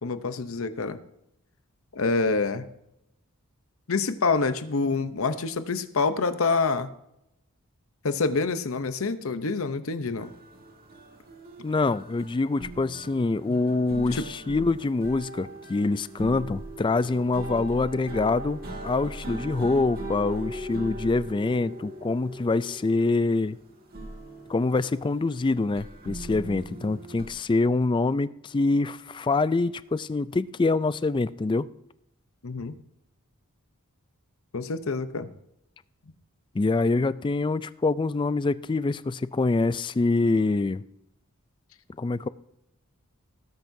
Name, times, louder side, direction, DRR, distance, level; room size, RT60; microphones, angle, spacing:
voice 1, 0.0-1.0 1.9-2.7 3.9-6.9 8.0-10.3 13.5-13.6 14.1-14.3 32.4-32.7 34.5-35.3, left 4 dB, 65° left, 0.8 m, -27 dB
sound 1, 10.2-27.3, right 1 dB, 45° right, 1.9 m, -40 dB
voice 2, 11.6-23.6 24.5-31.7 36.5-40.8 42.0-42.3, left 3 dB, 20° left, 0.3 m, -25 dB
19.0 x 10.5 x 2.7 m
head